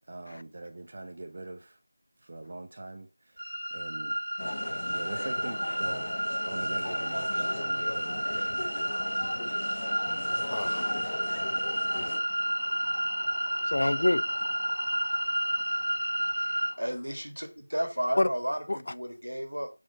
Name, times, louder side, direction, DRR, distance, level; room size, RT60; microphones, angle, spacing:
voice 1, 0.1-1.8 2.2-3.4 3.7-4.2 4.9-6.1 6.4-8.5, right 2 dB, 35° right, 0.8 m, -42 dB
sound 1, 3.4-16.7, equal, 60° right, 2.0 m, -31 dB
sound 2, 4.4-12.2, left 2 dB, 35° left, 0.8 m, -38 dB
voice 2, 10.5-10.9 11.9-16.3 18.2-18.3 18.7-18.8, left 1 dB, 50° left, 0.3 m, -32 dB
voice 3, 16.4-19.7, equal, 85° right, 2.0 m, -33 dB
5.5 x 4.9 x 4.1 m
figure-of-eight pair, 170°, 0 cm